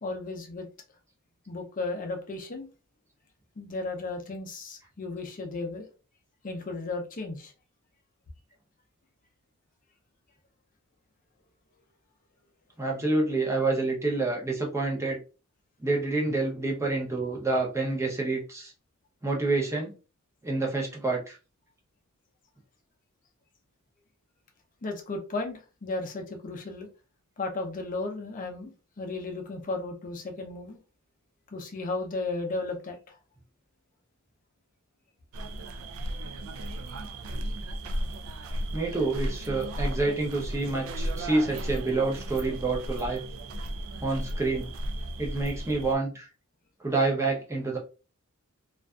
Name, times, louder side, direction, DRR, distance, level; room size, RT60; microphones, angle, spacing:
voice 1, 0.0-0.7 1.5-2.7 3.6-5.9 6.4-7.5 24.8-26.9 27.4-30.8 31.5-33.2, left 3 dB, 40° left, 3 dB, 0.5 m, -34 dB
voice 2, 12.8-15.2 15.8-18.7 19.2-19.9 20.4-21.4 38.7-43.2 44.0-44.7 45.2-46.3 46.8-47.8, right 3 dB, 15° right, -1 dB, 0.6 m, -28 dB
sound 1, 35.3-46.0, right 1 dB, 65° right, 0.3 m, -35 dB
2.5 x 2.4 x 2.2 m, 0.33 s
head